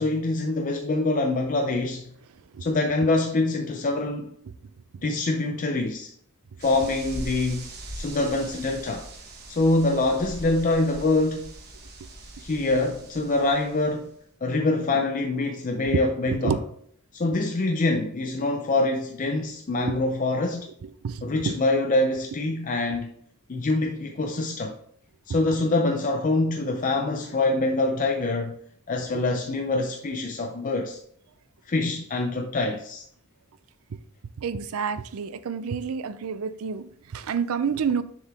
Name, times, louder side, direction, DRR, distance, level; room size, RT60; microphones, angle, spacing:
voice 1, 0.0-2.1 2.6-4.4 5.0-6.1 6.6-7.7 7.9-9.1 9.5-11.5 12.4-14.1 14.4-16.6 17.1-20.7 21.2-23.1 23.5-24.8 25.3-28.6 28.9-31.0 31.7-33.0, left 2 dB, 35° left, 0.5 m, -25 dB
sound 1, 6.6-14.1, right 1 dB, 45° right, 1.1 m, -41 dB
voice 2, 16.3-16.6 19.8-19.9 20.8-21.6 29.1-29.2 34.4-38.0, right 6 dB, 70° right, 0.4 m, -28 dB
6.8 x 4.7 x 3.4 m
head